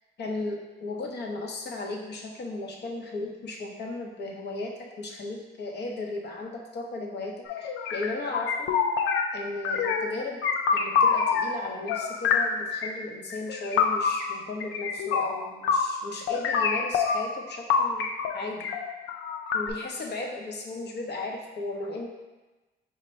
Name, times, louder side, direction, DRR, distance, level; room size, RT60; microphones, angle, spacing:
voice 1, 0.2-8.7 9.3-10.4 10.7-18.8 19.5-22.1, left 2 dB, 60° left, 1 dB, 0.8 m, -35 dB
sound 1, 7.5-9.4 9.6-10.2 10.4-11.6 11.9-12.9 13.3-16.0 16.3-17.4 17.7-19.7, left 6 dB, 80° left, 0.4 m, -26 dB
5.2 x 2.2 x 4.2 m, 1.2 s
cardioid pair, 90°, 20 cm